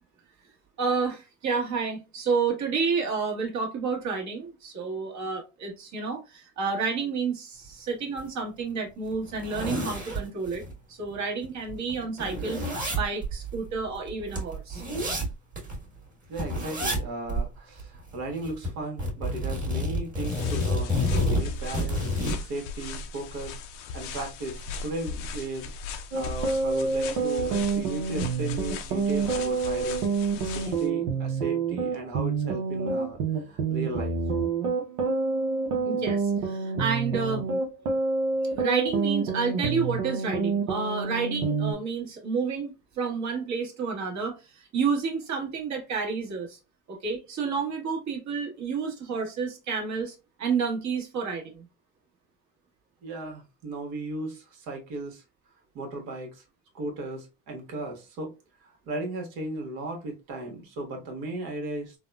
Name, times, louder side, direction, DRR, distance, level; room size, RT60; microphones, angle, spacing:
voice 1, 0.8-10.6 10.9-12.6 13.0-14.8 35.8-37.5 38.5-46.6 46.9-51.7, right 5 dB, 50° right, 1.2 m, -30 dB
sound 1, 8.2-8.3 8.7-8.8 9.1-10.7 11.1-11.2 11.4-15.8 16.4-17.0 17.3-17.5 17.8-18.7 19.0-22.4, left 1 dB, 20° right, 1.4 m, -29 dB
voice 2, 16.3-22.0 22.5-23.5 23.9-30.0 30.4-34.2 53.0-55.2 55.7-56.4 56.7-58.3 58.6-61.9, right 2 dB, 70° right, 1.2 m, -36 dB
sound 2, 20.2-30.9, left 4 dB, 85° left, 0.6 m, -38 dB
sound 3, 26.1-41.7, right 4 dB, 90° right, 0.8 m, -28 dB
3.5 x 2.1 x 2.2 m
supercardioid pair, 100°, 36 cm